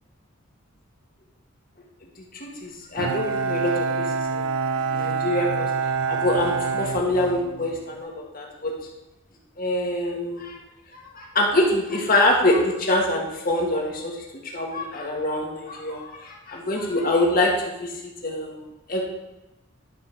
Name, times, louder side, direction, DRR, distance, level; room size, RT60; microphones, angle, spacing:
voice 1, 2.3-4.6 4.9-8.7 9.6-10.6 10.9-14.2 14.4-19.0, left 1 dB, 40° left, -1 dB, 1.6 m, -25 dB
Bowed string instrument, 3.0-7.8, right 5 dB, 85° right, 0.6 m, -26 dB
11.5 x 4.9 x 5.9 m, 1.0 s
head